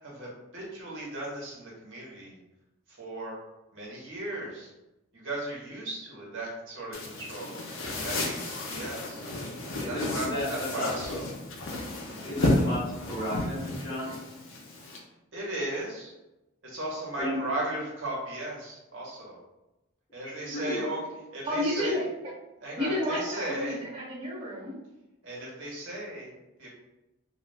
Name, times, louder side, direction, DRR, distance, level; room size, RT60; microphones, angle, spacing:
voice 1, 0.0-2.4 2.9-3.3 3.7-4.7 5.1-7.6 8.0-9.2 9.8-11.3 12.0-12.5 15.3-16.1 16.6-19.4 20.1-22.0 22.6-23.8 25.2-26.7, right 1 dB, 70° right, -4 dB, 1.0 m, -36 dB
sound 1, 6.9-15.0, left 1 dB, 75° left, 0.5 m, -32 dB
voice 2, 9.8-10.9 12.2-14.1 17.2-17.4 20.4-20.9, left 1 dB, 25° left, -10 dB, 1.0 m, -34 dB
voice 3, 21.4-22.0 22.8-24.8, left 1 dB, 25° right, -8 dB, 0.9 m, -30 dB
2.3 x 2.1 x 3.3 m, 0.97 s
head